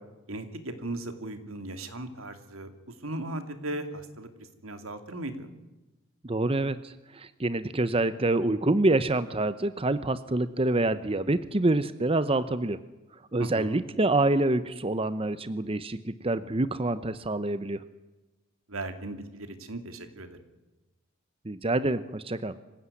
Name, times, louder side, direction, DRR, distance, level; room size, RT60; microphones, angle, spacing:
voice 1, 0.3-2.7 3.0-5.5 13.4-13.8 18.7-20.4, right 1 dB, 85° right, 8 dB, 2.8 m, -37 dB
voice 2, 6.2-12.8 13.3-17.8 21.4-22.5, right 2 dB, 25° right, 13 dB, 0.8 m, -26 dB
25.5 x 16.0 x 9.8 m, 1.1 s
head